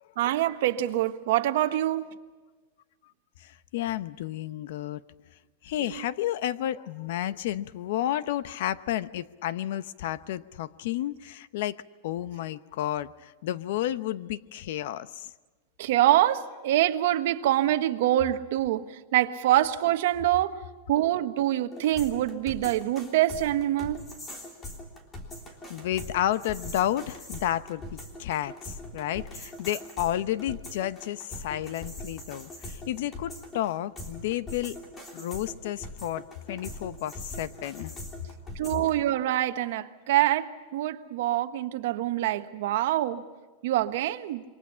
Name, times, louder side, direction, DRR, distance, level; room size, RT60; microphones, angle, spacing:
voice 1, 0.2-2.1 5.9-6.0 15.8-18.9 19.1-20.6 20.9-24.1 38.5-43.2 43.6-44.4, right 13 dB, 65° right, 1.3 m, -25 dB
voice 2, 3.4-5.0 5.6-15.3 25.7-34.8 35.1-37.9, left 12 dB, 65° left, 0.9 m, -31 dB
sound 1, 21.7-38.9, left 1 dB, 15° left, 3.4 m, -42 dB
27.5 x 24.0 x 5.7 m
supercardioid pair, 160°, 0 cm